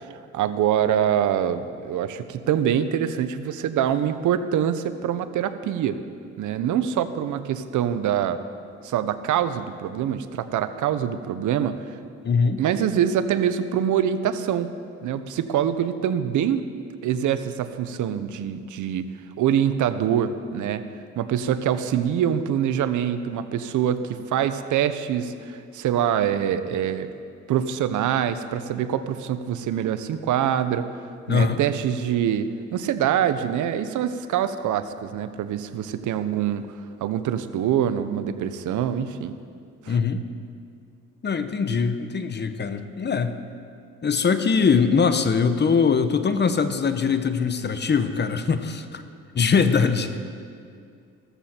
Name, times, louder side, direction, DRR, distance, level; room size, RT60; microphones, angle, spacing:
voice 1, 0.3-6.0 6.4-8.4 8.8-11.8 12.6-14.7 15.0-16.7 17.0-19.0 19.4-20.8 21.2-27.1 27.5-30.9 31.3-36.7 37.0-39.4 39.8-40.0, right 9 dB, 75° right, 11 dB, 0.9 m, -24 dB
voice 2, 12.2-12.6 31.3-31.6 39.9-40.2 41.2-43.3 44.0-49.0 49.3-50.2, left 5 dB, 35° left, 10 dB, 1.0 m, -22 dB
15.0 x 14.0 x 4.4 m, 2.3 s
cardioid pair, 90°, 30 cm